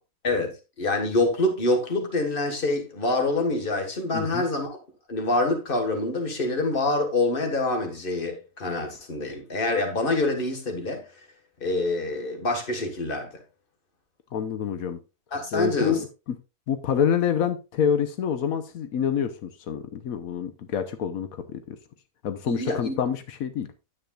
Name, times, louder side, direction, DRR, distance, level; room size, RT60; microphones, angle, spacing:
voice 1, 0.2-4.8 5.1-11.1 11.6-13.3 15.3-16.0 22.5-23.0, left 2 dB, 40° left, 1.8 m, -26 dB
voice 2, 4.1-4.4 14.3-15.0 15.5-16.4 16.7-21.8 22.2-23.7, left 8 dB, 90° left, 1.3 m, -27 dB
9.8 x 8.4 x 2.4 m
omnidirectional pair, 1.4 m